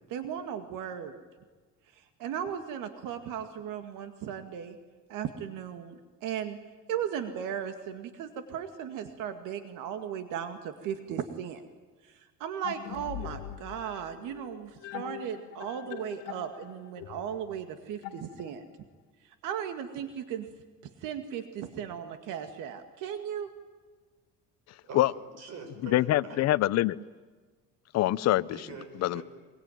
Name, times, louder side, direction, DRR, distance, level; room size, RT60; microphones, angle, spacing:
voice 1, 0.1-1.2 2.2-4.8 5.1-6.6 6.9-11.6 12.1-18.6 19.4-20.5 21.0-23.5, right 9 dB, 75° right, 8 dB, 2.1 m, -36 dB
sound 1, 12.6-18.8, left 13 dB, 85° left, 1.8 m, -43 dB
voice 2, 24.8-26.4 28.5-29.2, right 4 dB, 55° right, 6 dB, 6.6 m, -45 dB
voice 3, 25.8-27.0 27.9-28.7 29.0-29.2, left 15 dB, 55° left, 17 dB, 0.8 m, -25 dB
24.0 x 23.5 x 9.3 m, 1.4 s
cardioid pair, 140°, 31 cm